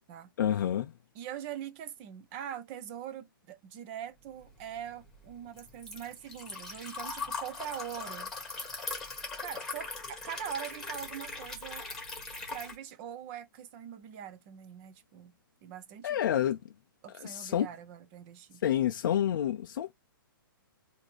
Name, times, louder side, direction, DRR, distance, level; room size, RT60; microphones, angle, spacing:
voice 1, 0.4-0.9 16.0-16.6 17.1-17.7 18.6-19.9, left 10 dB, 60° left, 0.4 m, -28 dB
voice 2, 1.1-8.3 9.4-11.8 12.5-15.3 15.6-16.2 17.0-18.6, right 9 dB, 30° right, 0.6 m, -42 dB
Liquid, 4.5-12.7, left 4 dB, 5° left, 1.6 m, -40 dB
3.9 x 2.7 x 3.2 m
hypercardioid pair, 150°, 12 cm